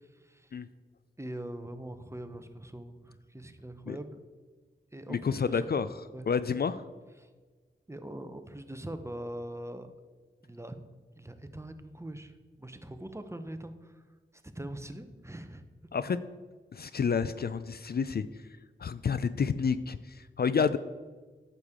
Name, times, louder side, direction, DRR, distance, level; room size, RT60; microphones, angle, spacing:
voice 1, 0.2-0.5 1.2-4.2 4.9-5.7 6.1-6.3 7.2-7.3 7.9-9.9 10.4-10.8 11.2-13.9 14.5-15.6, right 1 dB, 15° right, 9 dB, 0.8 m, -42 dB
voice 2, 5.1-5.9 6.3-6.8 15.9-16.2 16.7-18.3 18.8-20.8, left 6 dB, 50° left, 13 dB, 0.4 m, -29 dB
9.2 x 6.8 x 3.7 m, 1.4 s
cardioid pair, 40°, 20 cm